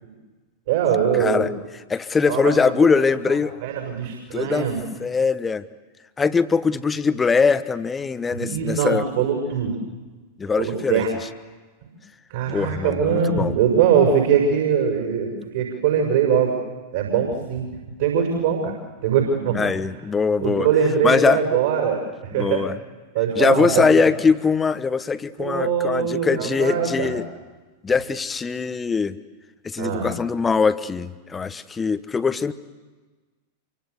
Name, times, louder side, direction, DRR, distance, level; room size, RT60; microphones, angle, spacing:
voice 1, 0.7-1.5 2.2-3.3 3.6-4.8 8.3-9.7 10.6-11.1 12.3-16.5 16.9-17.7 18.0-18.7 19.0-19.7 20.4-22.7 23.1-24.1 25.4-27.2 29.8-30.1, right 7 dB, 55° right, 2 dB, 6.3 m, -22 dB
voice 2, 1.2-1.5 1.9-3.5 4.3-4.7 5.0-5.6 6.2-9.0 10.4-11.1 12.5-13.6 19.5-20.7 21.0-21.4 22.3-22.8 23.4-27.2 27.8-29.2 29.6-32.5, left 5 dB, 15° left, 13 dB, 1.1 m, -21 dB
27.0 x 24.5 x 8.2 m, 1.3 s
figure-of-eight pair, 90°, 0 cm